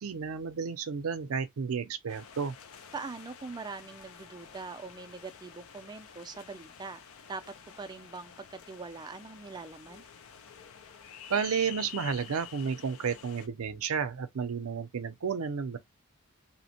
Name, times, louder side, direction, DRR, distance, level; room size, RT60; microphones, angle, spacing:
voice 1, 0.0-2.5 11.3-15.8, right 6 dB, 75° right, 0.5 m, -32 dB
sound 1, 2.1-13.5, left 7 dB, 70° left, 0.4 m, -49 dB
voice 2, 2.9-7.0 7.3-10.0, right 4 dB, 20° right, 0.3 m, -42 dB
2.8 x 2.1 x 2.8 m
head